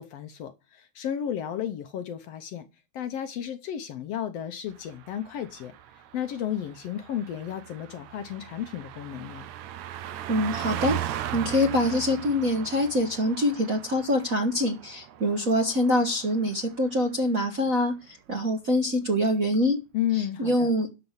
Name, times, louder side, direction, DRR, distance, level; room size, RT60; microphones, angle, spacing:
voice 1, 0.0-2.6 2.9-5.7 6.1-9.5 19.9-20.7, left 10 dB, 70° left, 1.7 m, -33 dB
Car passing by, 4.8-16.7 17.0-17.2, right 11 dB, 80° right, 2.1 m, -38 dB
voice 2, 10.3-11.0 11.3-19.8 20.1-20.9, left 1 dB, 45° right, 1.1 m, -25 dB
12.0 x 4.4 x 7.2 m
omnidirectional pair, 3.4 m